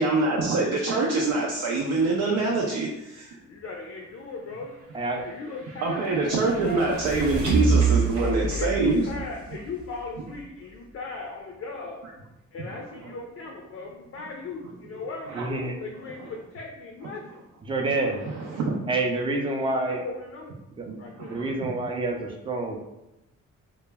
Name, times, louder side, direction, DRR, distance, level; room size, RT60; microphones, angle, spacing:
voice 1, 0.0-3.3 5.8-9.0 15.3-15.5 18.2-18.7 20.9-21.5, right 3 dB, 85° right, -1 dB, 0.5 m, -25 dB
voice 2, 3.5-4.7 5.2-7.1 8.2-12.0 12.5-15.3 15.8-17.4 19.4-20.6 21.0-21.4, left 3 dB, 50° left, 1 dB, 0.4 m, -37 dB
sound 1, 4.9-10.6, right 4 dB, 50° right, 0.8 m, -28 dB
voice 3, 15.4-15.7 17.7-18.2 18.9-20.0 20.8-20.9 21.3-22.8, right 2 dB, 15° right, 2 dB, 0.4 m, -27 dB
2.1 x 2.1 x 3.3 m, 0.91 s
cardioid pair, 90°, 30 cm